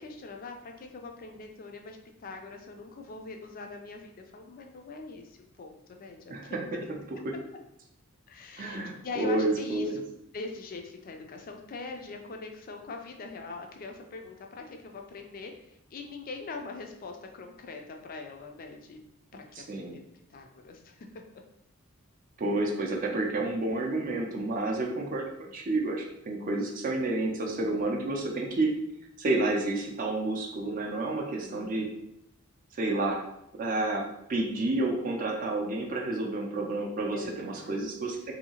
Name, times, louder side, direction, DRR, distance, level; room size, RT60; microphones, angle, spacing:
voice 1, 0.0-6.9 8.3-10.0 10.3-19.0 19.3-19.4 19.7-20.0 20.3-21.1 31.4-32.0 37.1-37.8, left 3 dB, 40° left, 3 dB, 0.4 m, -42 dB
voice 2, 8.6-8.9 9.2-10.0 19.6-20.0 22.4-28.7 29.2-31.9 32.8-33.3 33.6-34.0 34.3-38.3, right 2 dB, 40° right, 0 dB, 0.4 m, -30 dB
2.7 x 2.7 x 2.8 m, 0.79 s
head